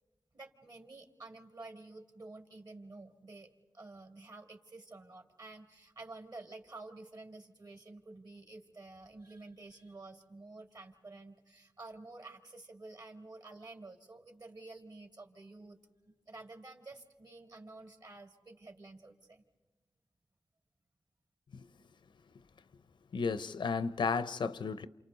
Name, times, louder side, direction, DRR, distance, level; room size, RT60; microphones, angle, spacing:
voice 1, 0.3-15.8 16.3-19.4, right 2 dB, 55° right, 3.0 m, -51 dB
voice 2, 23.1-24.9, left 5 dB, 85° left, 0.7 m, -33 dB
29.5 x 28.5 x 4.1 m
cardioid pair, 50°, 8 cm